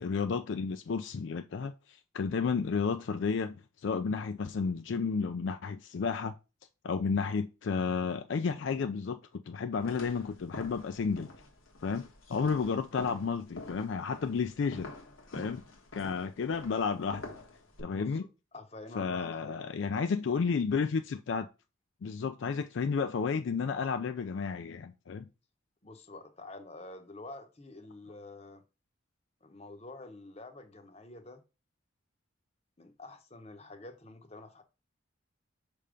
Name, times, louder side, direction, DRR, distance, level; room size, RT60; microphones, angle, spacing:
voice 1, 0.0-3.6 3.8-6.3 6.8-9.2 9.5-11.3 11.8-14.9 15.3-15.6 15.9-17.3 17.8-18.2 19.0-21.5 22.0-25.2, left 5 dB, 65° left, 0.4 m, -32 dB
sound 1, 9.8-17.8, left 2 dB, 85° left, 1.5 m, -47 dB
voice 2, 17.9-19.5 25.8-28.6 29.4-31.4 32.8-34.6, left 2 dB, 30° left, 0.8 m, -48 dB
5.5 x 3.5 x 5.1 m
head